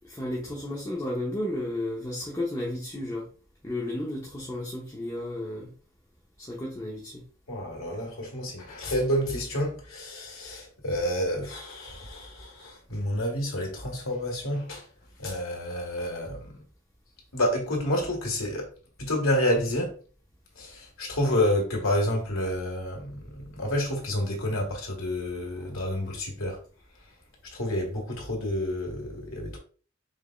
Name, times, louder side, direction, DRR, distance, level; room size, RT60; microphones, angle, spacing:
voice 1, 0.0-3.3 3.6-5.7 6.4-7.2 25.6-25.7, left 1 dB, 15° left, 0.8 m, -33 dB
voice 2, 7.5-14.9 15.2-16.6 17.3-18.7 19.0-20.0 20.5-26.6 27.5-29.6, left 1 dB, 90° left, 1.6 m, -29 dB
5.0 x 3.5 x 2.3 m
head